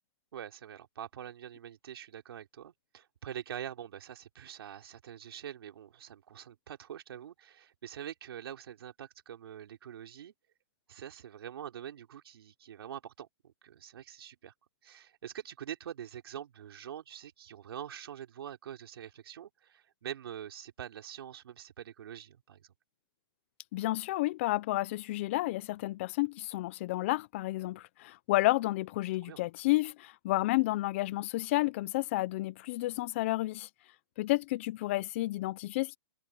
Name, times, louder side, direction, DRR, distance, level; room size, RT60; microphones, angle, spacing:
voice 1, 0.3-10.3 10.9-14.5 14.8-22.7 29.2-29.4, right 10 dB, 70° right, 3.5 m, -45 dB
voice 2, 23.7-33.7 34.2-36.0, left 18 dB, 30° left, 0.5 m, -31 dB
hypercardioid pair, 165°, 13 cm